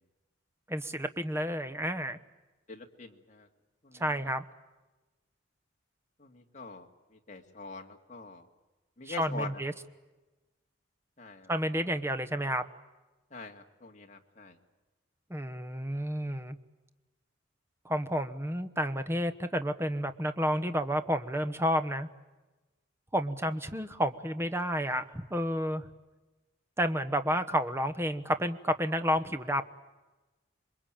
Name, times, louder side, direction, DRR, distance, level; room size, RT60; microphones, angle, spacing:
voice 1, 0.7-2.2 3.9-4.4 9.0-9.7 11.5-12.6 15.3-16.6 17.8-22.1 23.1-25.9 26.8-29.6, equal, 15° right, 9 dB, 1.1 m, -30 dB
voice 2, 2.7-3.5 3.8-4.0 6.2-6.9 7.3-8.5 9.0-9.5 11.2-11.5 13.3-14.6, left 4 dB, 35° left, 2 dB, 2.3 m, -44 dB
27.5 x 22.0 x 9.0 m, 1.1 s
head